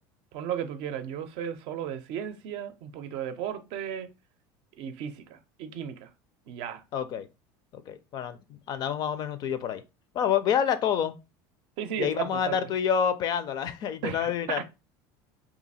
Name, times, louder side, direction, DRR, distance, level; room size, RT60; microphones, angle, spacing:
voice 1, 0.3-4.1 4.8-6.1 6.5-6.8 11.8-12.6 14.0-14.6, right 9 dB, 60° right, 0.5 m, -35 dB
voice 2, 6.9-7.3 7.7-9.8 10.1-11.1 12.0-14.6, left 8 dB, 40° left, 0.4 m, -28 dB
2.8 x 2.4 x 4.1 m
supercardioid pair, 130°, 10 cm